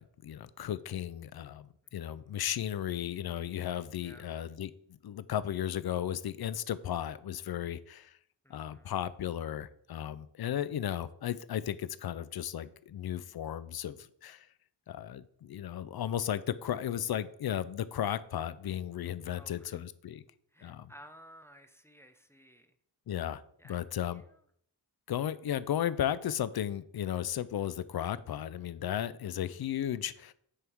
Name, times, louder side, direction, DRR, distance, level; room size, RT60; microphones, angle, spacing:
voice 1, 0.0-8.2 8.5-14.5 14.9-20.2 20.6-20.9 23.1-23.4 23.7-24.2 25.1-30.3, left 10 dB, 60° left, 16 dB, 0.5 m, -35 dB
voice 2, 1.8-2.2 4.0-4.3 8.4-9.1 19.3-19.8 20.5-22.8 23.6-23.8 24.1-24.4, equal, 5° left, 7 dB, 0.7 m, -56 dB
10.0 x 3.6 x 4.5 m, 0.67 s
wide cardioid pair, 75°, 43 cm